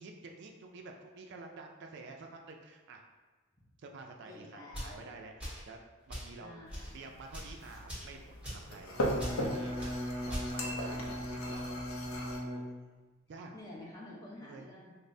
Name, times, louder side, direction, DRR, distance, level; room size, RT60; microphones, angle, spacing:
voice 1, 0.0-3.0 3.8-5.8 6.1-6.6 6.9-11.8 12.2-12.6 13.3-13.5 14.4-14.7, right 3 dB, 55° right, 2 dB, 0.3 m, -50 dB
voice 2, 4.2-5.0 6.4-7.0 13.5-14.9, left 1 dB, 20° left, -6 dB, 0.8 m, -49 dB
sound 1, 4.7-5.0 5.4-5.7 6.1-6.3 6.7-6.9 7.3-7.5 7.9-8.1 8.4-8.7 9.2-9.4 9.8-9.9 10.3-10.5, equal, 5° right, 1.5 m, -40 dB
sound 2, 6.7-12.4, equal, 75° left, 0.5 m, -39 dB
Bowed string instrument, 8.9-13.1, equal, 25° right, 0.9 m, -39 dB
5.2 x 2.0 x 2.6 m, 1.3 s
head